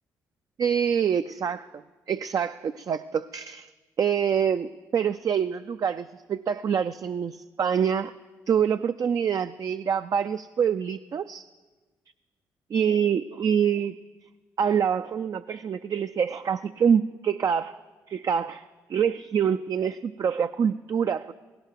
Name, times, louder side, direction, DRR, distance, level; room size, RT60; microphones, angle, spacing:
voice 1, 0.6-1.7 2.1-3.7 4.0-8.1 8.5-11.4 12.7-14.0 14.6-17.7 18.1-18.6 18.9-21.3, right 7 dB, 50° right, 10 dB, 0.4 m, -25 dB
17.0 x 16.5 x 4.6 m, 1.3 s
supercardioid pair, 55°, 7 cm